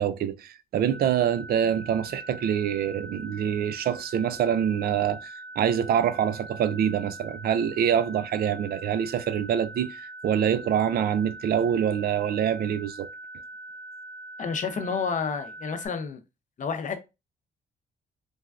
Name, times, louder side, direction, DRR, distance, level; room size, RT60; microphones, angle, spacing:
voice 1, 0.0-13.1, right 9 dB, 65° right, 0.4 m, -25 dB
sound 1, 0.9-15.9, right 2 dB, 10° left, 0.8 m, -42 dB
voice 2, 14.4-16.2 16.6-17.0, left 6 dB, 50° left, 0.6 m, -30 dB
3.2 x 2.2 x 2.4 m
cardioid pair, 75°, 17 cm